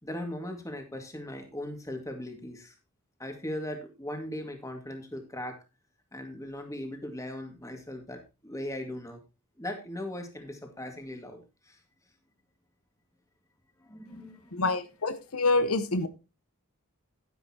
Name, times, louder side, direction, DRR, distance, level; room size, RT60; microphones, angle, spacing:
voice 1, 0.0-2.8 3.2-5.6 6.1-9.2 9.6-11.8 13.8-14.7, left 1 dB, 15° left, 4 dB, 2.0 m, -39 dB
voice 2, 14.5-16.1, left 3 dB, 75° left, 11 dB, 1.0 m, -26 dB
11.0 x 10.5 x 2.9 m, 0.28 s
head